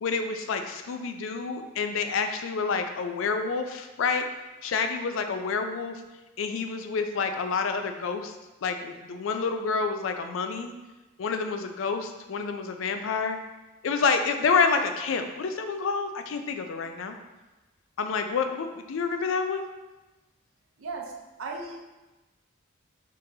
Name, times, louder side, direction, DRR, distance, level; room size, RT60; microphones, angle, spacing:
voice 1, 0.0-4.3 4.6-6.0 6.4-8.3 8.6-10.7 11.2-13.4 13.8-17.2 18.0-19.6, left 5 dB, 70° left, 6 dB, 0.4 m, -28 dB
voice 2, 20.8-21.1 21.4-21.8, right 3 dB, 90° right, 0 dB, 0.6 m, -35 dB
4.0 x 3.7 x 2.7 m, 1.1 s
head